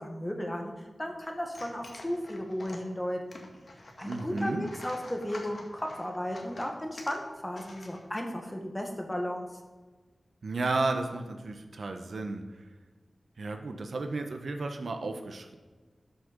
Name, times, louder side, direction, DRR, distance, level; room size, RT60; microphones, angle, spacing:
voice 1, 0.0-3.5 4.0-9.5, equal, 15° left, 2 dB, 1.8 m, -35 dB
sound 1, 1.4-8.3, left 2 dB, 55° left, 1.9 m, -48 dB
voice 2, 4.0-4.7 10.4-12.4 13.4-15.6, right 3 dB, 75° right, 6 dB, 1.1 m, -33 dB
13.0 x 6.6 x 5.3 m, 1.3 s
wide cardioid pair, 105°, 0 cm